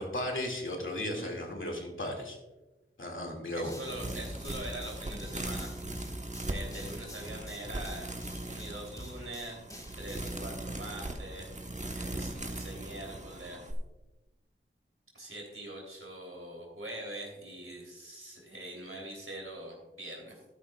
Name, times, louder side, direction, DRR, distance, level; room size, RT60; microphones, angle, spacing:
voice 1, 0.0-2.4 3.0-3.7, left 1 dB, 65° left, 1 dB, 2.3 m, -35 dB
voice 2, 0.9-1.3 3.5-5.7 6.5-8.1 8.4-9.6 9.9-11.5 11.9-13.6 15.1-20.4, right 1 dB, 80° right, -1 dB, 3.3 m, -43 dB
sound 1, 3.7-10.4, left 1 dB, 15° left, 1.6 m, -47 dB
sound 2, 3.8-13.7, right 1 dB, 35° right, 1.3 m, -39 dB
12.5 x 11.5 x 2.4 m, 1.1 s
wide cardioid pair, 45°, 21 cm